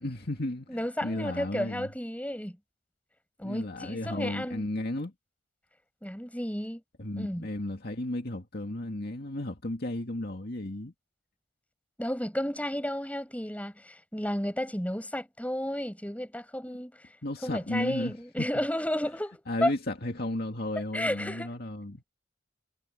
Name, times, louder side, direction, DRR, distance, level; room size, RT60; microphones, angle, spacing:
voice 1, 0.0-1.9 3.4-5.1 7.0-10.9 17.2-18.5 19.5-22.0, left 1 dB, 50° left, 2.2 m, -34 dB
voice 2, 0.7-2.6 3.4-4.7 6.0-6.8 7.2-7.5 12.0-17.1 17.4-19.7 20.9-21.5, left 1 dB, 5° left, 7.1 m, -32 dB
head